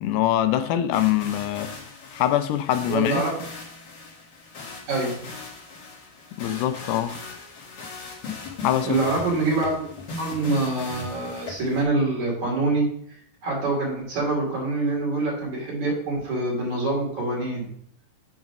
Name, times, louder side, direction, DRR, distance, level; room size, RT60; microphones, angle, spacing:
voice 1, 0.0-1.7 2.1-3.2 6.4-7.2 8.6-9.0, left 12 dB, 90° left, 2.5 m, -23 dB
sound 1, 0.9-11.8, left 4 dB, 50° left, 2.0 m, -39 dB
voice 2, 2.9-3.3 4.9-5.4 8.8-9.8 10.2-12.9 13.4-17.7, right 2 dB, 55° right, 3.9 m, -25 dB
7.5 x 3.9 x 5.9 m
omnidirectional pair, 4.2 m